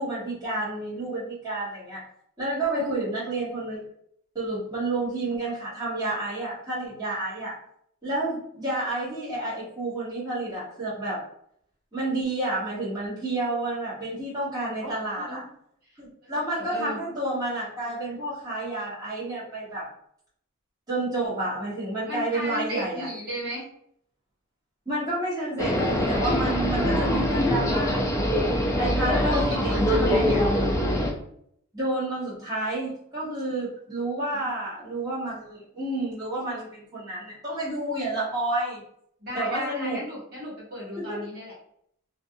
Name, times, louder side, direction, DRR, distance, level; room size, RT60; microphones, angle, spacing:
voice 1, 0.0-2.0 2.4-3.8 4.3-7.5 8.0-11.2 11.9-15.4 16.0-19.9 20.9-23.1 24.9-28.4 28.8-30.3 31.7-38.8 39.3-40.0 40.9-41.2, right 2 dB, 20° right, -10 dB, 1.2 m, -30 dB
voice 2, 2.7-3.0 14.8-15.5 16.2-16.3 16.6-17.0 22.1-23.7 29.1-30.4 34.3-34.5 39.2-41.5, equal, 45° right, -7 dB, 1.3 m, -35 dB
sound 1, 25.6-31.1, equal, 15° left, 0.4 m, -23 dB
2.5 x 2.4 x 2.6 m, 0.68 s
head